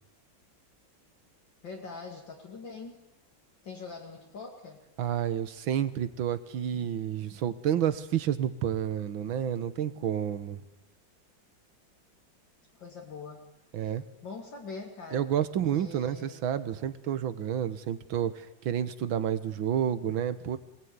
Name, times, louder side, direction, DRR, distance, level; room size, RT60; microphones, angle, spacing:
voice 1, 1.6-3.0 3.6-4.8 12.7-13.5 13.8-13.9 14.2-15.3 15.7-16.4, left 4 dB, 65° left, 0 dB, 3.2 m, -43 dB
voice 2, 5.0-10.6 13.7-14.0 15.1-20.6, right 9 dB, 75° right, 13 dB, 2.0 m, -30 dB
23.5 x 19.0 x 9.7 m, 0.91 s
omnidirectional pair, 2.2 m